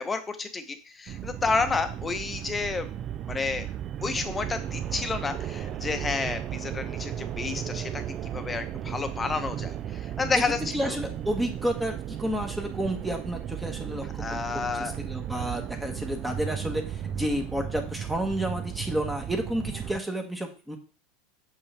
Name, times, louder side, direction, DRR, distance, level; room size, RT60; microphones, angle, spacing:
voice 1, 0.0-2.9 3.3-3.7 4.0-11.0 14.2-14.9, left 4 dB, 20° left, 8 dB, 1.0 m, -30 dB
sound 1, 1.1-20.0, right 10 dB, 40° right, 0.4 m, -35 dB
voice 2, 10.7-14.4 14.8-20.8, right 1 dB, 5° right, 4 dB, 1.3 m, -31 dB
7.0 x 5.4 x 3.4 m, 0.36 s
supercardioid pair, 115°, 0 cm